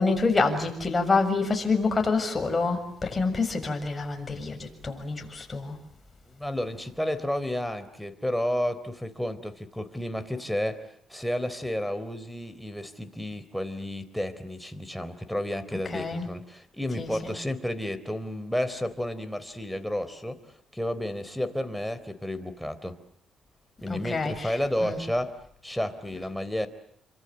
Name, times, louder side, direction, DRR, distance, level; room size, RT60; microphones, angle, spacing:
voice 1, 0.0-5.8 15.9-16.3 17.0-17.3 23.9-24.5 24.8-25.0, left 3 dB, 25° left, 7.0 m, -27 dB
voice 2, 6.4-23.0 23.8-25.4 25.6-26.7, left 1 dB, ahead, 3.8 m, -31 dB
29.5 x 26.0 x 7.9 m
cardioid pair, 90°, 0 cm